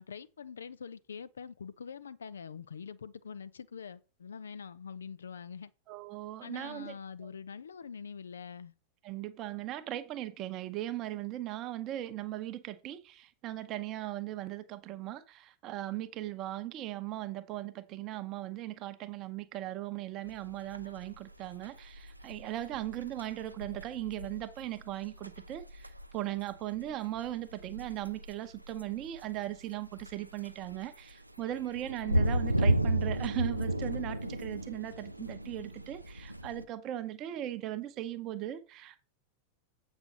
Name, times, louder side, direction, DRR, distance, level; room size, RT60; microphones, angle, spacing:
voice 1, 0.0-5.7 6.4-8.7, left 6 dB, 70° left, 0.4 m, -44 dB
voice 2, 5.9-6.9 7.2-7.3 9.0-39.0, right 14 dB, 35° right, 0.9 m, -38 dB
sound 1, 20.2-36.6, right 1 dB, 85° right, 0.5 m, -34 dB
8.0 x 6.1 x 3.9 m
figure-of-eight pair, 90°, 0 cm